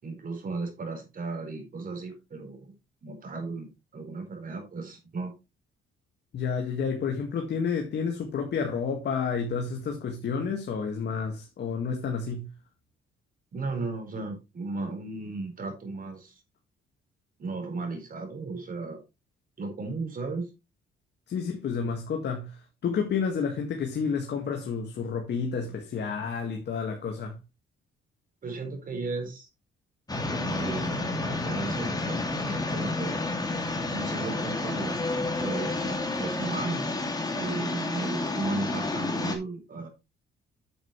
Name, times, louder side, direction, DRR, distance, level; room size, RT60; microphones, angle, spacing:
voice 1, 0.0-2.7 3.0-3.7 3.9-5.3 13.5-16.4 17.4-19.0 19.6-20.5 28.4-29.5 30.2-33.3 33.9-35.0 35.4-36.9 37.3-39.9, right 3 dB, 45° right, 4.5 m, -35 dB
voice 2, 6.3-12.5 21.3-27.4, left 6 dB, 60° left, 1.8 m, -30 dB
sound 1, 30.1-39.4, left 2 dB, 20° left, 2.4 m, -30 dB
9.0 x 7.7 x 3.2 m
cardioid pair, 90°, 20 cm